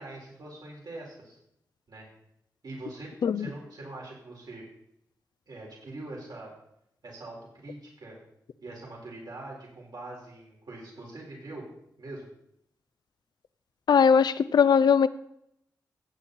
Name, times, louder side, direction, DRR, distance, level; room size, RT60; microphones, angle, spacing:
voice 1, 0.0-1.4 1.9-2.1 2.6-3.1 3.3-4.6 5.5-6.5 7.0-8.2 8.6-11.7 12.0-12.3, right 2 dB, 70° right, -3 dB, 4.6 m, -43 dB
voice 2, 13.9-15.1, left 6 dB, 80° left, 15 dB, 0.6 m, -20 dB
15.5 x 8.5 x 4.3 m, 0.75 s
cardioid pair, 55°, 7 cm